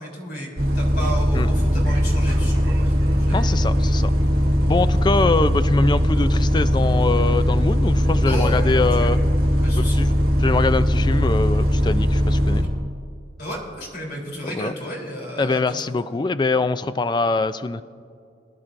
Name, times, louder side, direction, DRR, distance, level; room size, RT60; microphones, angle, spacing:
voice 1, 0.0-2.9 3.2-3.4 8.2-9.2 9.6-10.1 13.4-16.2, equal, 55° left, -2 dB, 3.4 m, -33 dB
Bus, 0.6-12.6, equal, 55° right, 1.6 m, -19 dB
voice 2, 3.3-4.1 4.7-9.2 9.8-10.1 10.4-12.6 14.4-14.7 15.4-17.8, left 3 dB, 25° left, 13 dB, 0.3 m, -23 dB
22.5 x 11.0 x 2.6 m, 2.3 s
head